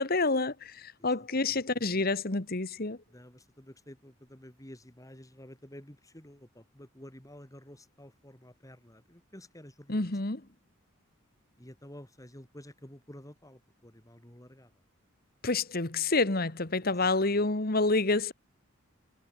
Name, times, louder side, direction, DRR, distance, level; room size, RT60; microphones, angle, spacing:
voice 1, 0.0-3.0 9.9-10.4 15.4-18.3, left 3 dB, 45° left, 1.6 m, -28 dB
voice 2, 1.0-1.6 3.1-10.2 11.6-14.7 17.0-17.4, left 1 dB, 15° left, 3.1 m, -51 dB
head